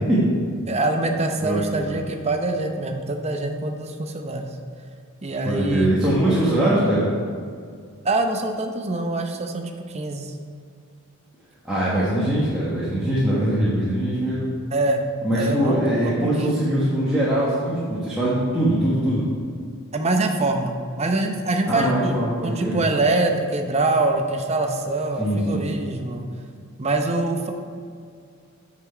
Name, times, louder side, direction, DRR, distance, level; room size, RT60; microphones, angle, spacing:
voice 1, 0.7-4.5 5.2-5.9 8.0-10.3 14.7-15.0 15.3-16.6 19.9-26.3 26.8-27.5, right 2 dB, 30° right, 4 dB, 0.7 m, -24 dB
voice 2, 1.4-2.0 5.4-7.1 11.6-14.4 15.2-19.2 21.7-22.8 25.2-25.6, right 1 dB, 5° right, -10 dB, 1.4 m, -22 dB
9.1 x 6.0 x 4.5 m, 2.2 s
head